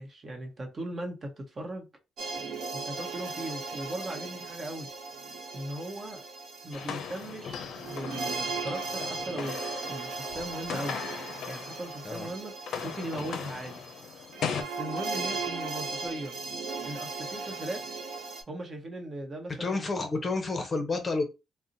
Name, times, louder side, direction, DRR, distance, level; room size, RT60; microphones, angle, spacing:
voice 1, 0.0-1.9 2.7-4.9 5.5-6.2 6.6-9.6 9.9-11.0 11.4-12.5 12.8-13.8 14.5-16.3 16.8-17.8 18.5-19.8, right 1 dB, 35° right, 0.9 m, -38 dB
sound 1, 2.2-18.4, right 4 dB, 70° right, 0.9 m, -37 dB
sound 2, 6.7-12.2 12.5-14.6, left 7 dB, 70° left, 0.5 m, -38 dB
voice 2, 19.6-21.2, left 3 dB, 30° left, 0.7 m, -30 dB
2.4 x 2.0 x 3.9 m
cardioid pair, 90°, 0 cm